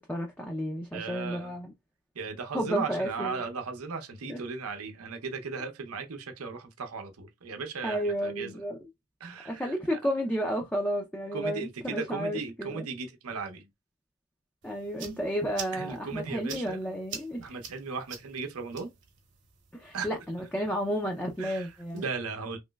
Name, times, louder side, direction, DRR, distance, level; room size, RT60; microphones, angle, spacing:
voice 1, 0.0-1.7 2.5-3.4 4.3-4.4 7.8-8.8 9.4-12.9 14.6-17.5 19.7-22.1, equal, 5° left, 0.4 m, -32 dB
voice 2, 0.9-1.6 2.1-8.5 9.2-9.7 11.3-13.7 15.7-16.8 17.4-18.9 19.9-20.2 21.4-22.6, right 4 dB, 90° right, 0.7 m, -37 dB
sound 1, 14.6-22.0, right 7 dB, 60° right, 1.0 m, -47 dB
3.2 x 3.0 x 2.2 m
head